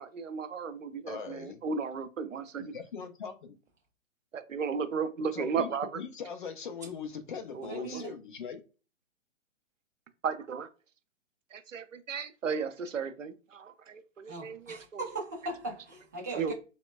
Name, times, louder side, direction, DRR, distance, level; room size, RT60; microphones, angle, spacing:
voice 1, 0.0-2.7 4.3-6.0 7.5-8.0 10.2-10.7 11.5-15.1 16.4-16.5, right 6 dB, 80° right, 0.6 m, -35 dB
voice 2, 1.1-1.6 2.6-3.6 5.3-8.6, left 6 dB, 40° left, 0.5 m, -40 dB
voice 3, 7.7-8.1 14.3-16.5, right 3 dB, 15° right, 0.3 m, -38 dB
4.0 x 2.1 x 2.2 m
figure-of-eight pair, 120°, 38 cm